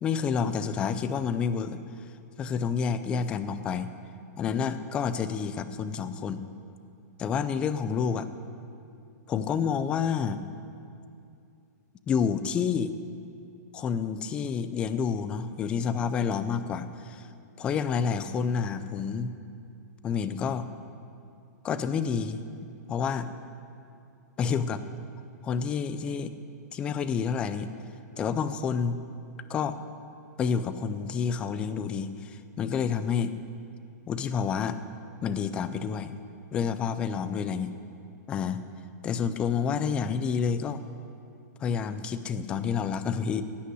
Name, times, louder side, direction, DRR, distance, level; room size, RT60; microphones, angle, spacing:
voice 1, 0.0-1.8 2.4-3.9 4.4-6.4 7.2-8.3 9.3-10.4 12.1-12.9 13.7-17.3 17.6-19.3 20.0-20.6 21.6-22.4 22.9-23.3 24.4-24.8 25.4-26.3 26.7-27.7 28.2-29.0 29.5-29.8 30.4-33.4 34.1-34.8 35.2-36.2 36.5-37.7 38.3-38.6 39.0-40.8 41.6-43.4, left 6 dB, 10° left, 12 dB, 0.3 m, -29 dB
16.5 x 5.6 x 9.5 m, 2.5 s
hypercardioid pair, 170°, 9 cm